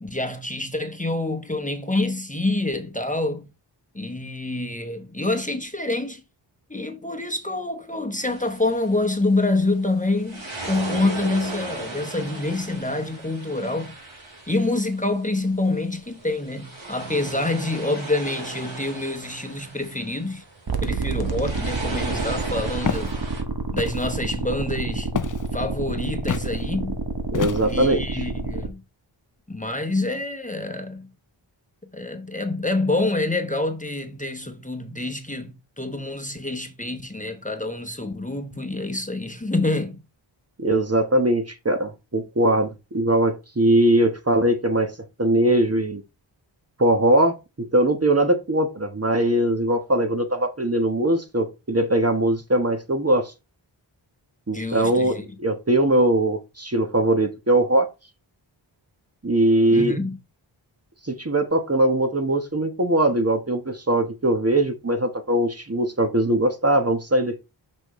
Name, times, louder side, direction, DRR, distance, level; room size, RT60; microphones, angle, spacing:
voice 1, 0.0-3.5 3.9-6.2 6.7-13.9 14.5-20.4 20.8-23.2 23.7-25.1 25.5-27.0 27.7-28.8 29.5-31.1 31.9-40.0 54.5-55.2 59.7-60.2, left 2 dB, 15° left, 1.1 m, -27 dB
sound 1, 8.2-23.4, right 2 dB, 75° right, 4.0 m, -37 dB
sound 2, 20.7-28.7, right 3 dB, 50° right, 1.2 m, -29 dB
Walk footsteps, 22.8-23.1 23.8-24.1 25.2-25.5 26.3-26.5 27.3-27.8, left 7 dB, 40° left, 0.5 m, -28 dB
voice 2, 27.3-28.2 40.6-44.9 45.2-46.0 46.8-47.4 47.7-53.3 54.5-57.9 59.2-60.0 61.1-67.4, right 1 dB, 30° right, 1.2 m, -21 dB
6.2 x 6.1 x 3.2 m
wide cardioid pair, 75°, 47 cm